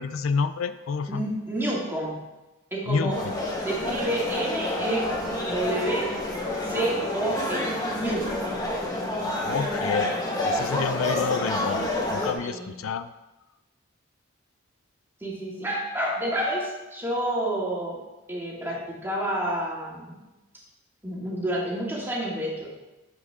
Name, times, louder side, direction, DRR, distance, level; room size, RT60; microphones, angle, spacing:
voice 1, 0.0-1.2 2.9-3.4 9.4-10.2 10.4-13.1, left 5 dB, 80° left, 12 dB, 0.4 m, -29 dB
voice 2, 1.1-2.2 2.7-3.2 3.6-5.1 5.5-6.1 6.6-8.5 12.4-12.7 15.2-18.0 18.3-20.2 21.0-22.7, right 1 dB, 10° right, -5 dB, 2.3 m, -29 dB
after concert - dopo concerto allumiere, 3.1-12.3, left 1 dB, 20° left, 1.4 m, -28 dB
9.7 x 7.5 x 3.6 m, 1.0 s
head